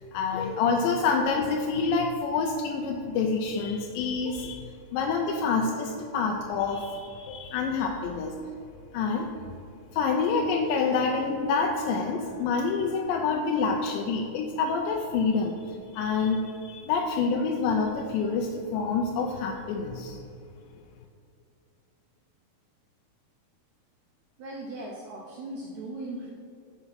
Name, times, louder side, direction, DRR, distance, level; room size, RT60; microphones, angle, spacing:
voice 1, 0.1-8.3 8.9-9.3 9.9-20.2, left 4 dB, 80° left, 1 dB, 2.1 m, -27 dB
voice 2, 24.4-26.3, right 2 dB, 80° right, -2 dB, 1.6 m, -38 dB
5.9 x 5.6 x 5.6 m, 2.5 s
omnidirectional pair, 4.2 m